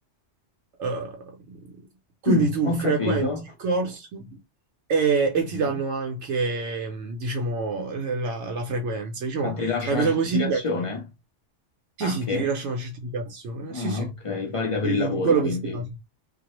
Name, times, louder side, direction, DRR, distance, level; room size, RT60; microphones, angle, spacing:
voice 1, 0.8-1.8 2.2-3.3 3.6-4.4 4.9-10.6 12.0-14.1 14.8-15.9, right 4 dB, 75° right, 0.9 m, -26 dB
voice 2, 2.3-3.5 9.4-11.0 12.0-12.5 13.7-15.8, left 3 dB, 45° left, 0.4 m, -27 dB
2.3 x 2.0 x 2.9 m
omnidirectional pair, 1.2 m